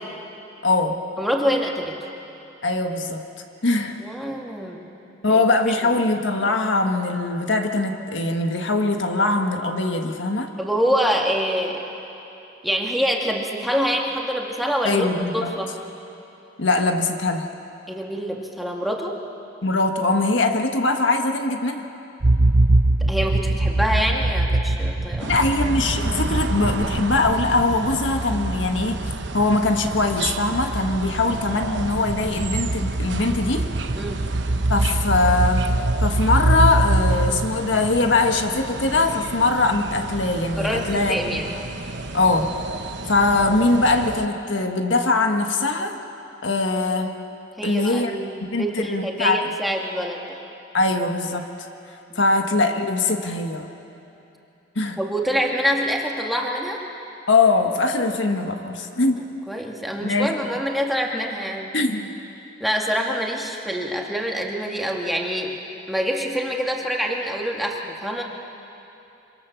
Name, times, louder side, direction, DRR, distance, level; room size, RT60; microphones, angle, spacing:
voice 1, 0.6-1.0 2.6-3.2 3.6-4.0 5.2-10.5 14.8-15.5 16.6-17.5 19.6-21.9 25.2-29.0 29.3-33.6 34.7-35.6 36.0-41.1 42.1-42.5 43.1-46.0 46.4-47.2 47.6-48.1 48.5-49.5 50.7-51.5 52.1-53.7 54.7-55.0 57.3-59.2 60.0-60.3 61.7-62.1, left 3 dB, 75° left, 4 dB, 1.6 m, -21 dB
voice 2, 1.2-2.1 4.0-4.8 5.3-5.4 5.7-5.9 10.6-11.8 12.6-15.7 17.9-19.2 23.0-25.3 31.3-31.4 33.9-34.3 40.6-41.5 47.6-50.4 52.1-52.3 55.0-56.8 59.5-61.8 62.6-65.5 65.9-68.2, equal, ahead, -1 dB, 2.1 m, -25 dB
sound 1, 22.2-37.9, right 2 dB, 40° right, 0.7 m, -23 dB
sound 2, 25.2-44.3, right 3 dB, 65° right, 1.0 m, -33 dB
26.0 x 25.0 x 7.2 m, 2.8 s
head